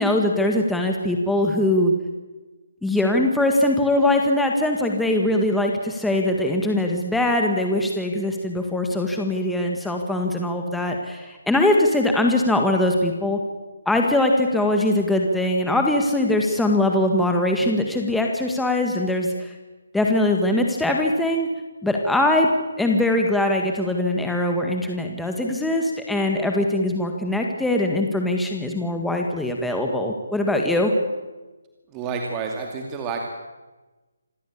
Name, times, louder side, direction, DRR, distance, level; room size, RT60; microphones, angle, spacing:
voice 1, 0.0-1.9 2.8-13.4 13.9-19.5 19.9-21.5 21.8-22.5 22.8-30.9, left 1 dB, 5° left, 1 dB, 1.8 m, -22 dB
voice 2, 31.9-33.2, right 5 dB, 20° right, 2 dB, 2.4 m, -29 dB
26.5 x 15.5 x 8.7 m, 1.2 s
figure-of-eight pair, 155°, 0 cm